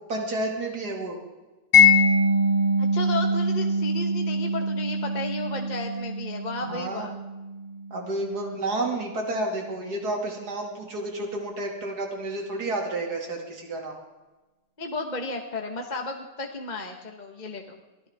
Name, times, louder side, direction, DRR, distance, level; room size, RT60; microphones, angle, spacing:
voice 1, 0.1-1.2 6.7-7.1 7.9-14.0, right 2 dB, 65° right, 1 dB, 3.1 m, -30 dB
Mallet percussion, 1.7-8.5, left 2 dB, 55° left, 4.1 m, -23 dB
voice 2, 2.8-7.1 14.8-17.8, left 2 dB, 25° left, 2 dB, 1.4 m, -33 dB
24.0 x 16.0 x 3.6 m, 1.1 s
omnidirectional pair, 1.8 m